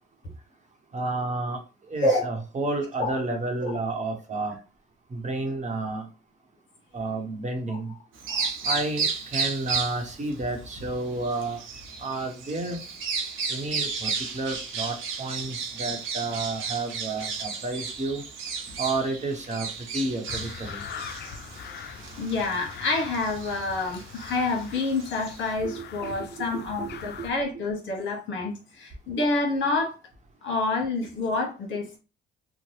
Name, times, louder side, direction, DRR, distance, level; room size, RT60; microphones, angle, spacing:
voice 1, 0.9-1.6 1.9-4.6 5.1-6.1 6.9-7.9 8.6-11.6 12.0-12.8 13.5-18.2 18.8-20.8 25.6-26.9 27.2-27.3, right 2 dB, 35° right, 1.0 m, -31 dB
Bird vocalization bird call bird song, 8.1-25.5, right 5 dB, 80° right, 0.9 m, -34 dB
sound 1, 20.3-27.3, left 7 dB, 55° left, 0.5 m, -42 dB
voice 2, 22.2-29.9 30.4-32.0, left 2 dB, 75° left, 1.0 m, -28 dB
2.9 x 2.1 x 3.1 m
cardioid pair, 90°, 20 cm